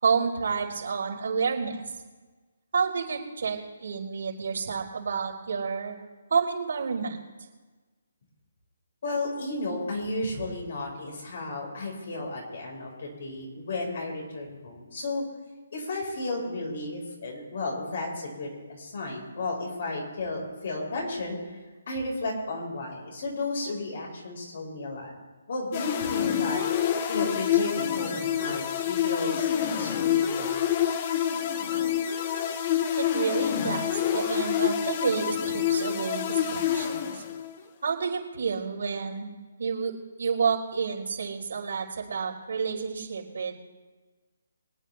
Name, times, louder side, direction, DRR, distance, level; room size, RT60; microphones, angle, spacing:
voice 1, 0.0-1.8 2.7-6.0 6.3-7.2 33.0-37.2 37.8-39.3 39.6-43.5, right 5 dB, 70° right, -4 dB, 3.9 m, -29 dB
voice 2, 9.0-15.2 15.7-21.4 21.9-25.1 25.5-26.6 27.1-30.5, left 2 dB, 60° left, -1 dB, 4.9 m, -33 dB
sound 1, 25.7-37.6, left 9 dB, 35° left, 1.0 m, -27 dB
24.0 x 9.3 x 3.4 m, 1.3 s
hypercardioid pair, 160°, 0 cm